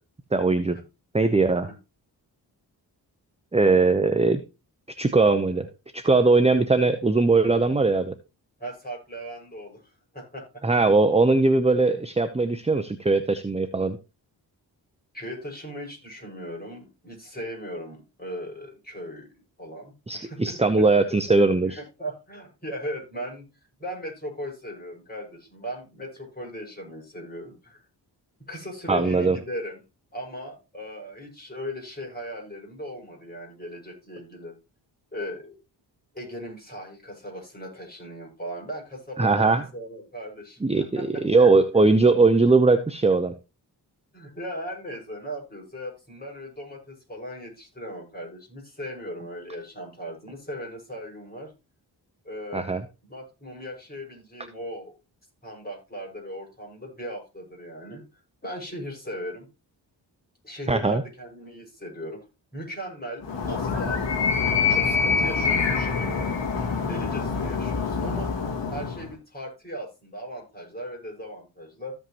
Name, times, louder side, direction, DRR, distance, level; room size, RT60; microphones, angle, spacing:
voice 1, 0.3-0.8 1.1-1.7 3.5-4.4 5.0-5.7 5.9-8.1 10.6-14.0 20.1-21.8 28.9-29.4 39.2-39.6 40.6-43.3 52.5-52.8 60.7-61.0, right 3 dB, 15° right, 10 dB, 0.8 m, -20 dB
voice 2, 8.6-9.8 10.1-10.5 15.1-20.6 21.7-23.5 23.8-27.8 28.5-29.8 30.1-34.6 35.1-35.6 36.1-41.1 41.4-41.5 44.1-51.5 52.2-52.7 53.0-54.9 55.4-58.0 58.4-59.5 60.4-62.3 62.5-64.2 64.6-66.3 66.9-68.3 68.7-72.0, equal, 20° left, 0 dB, 6.0 m, -38 dB
Animal, 63.2-69.1, left 5 dB, 70° left, 2.3 m, -25 dB
14.5 x 5.5 x 3.0 m, 0.28 s
supercardioid pair, 50°, 44 cm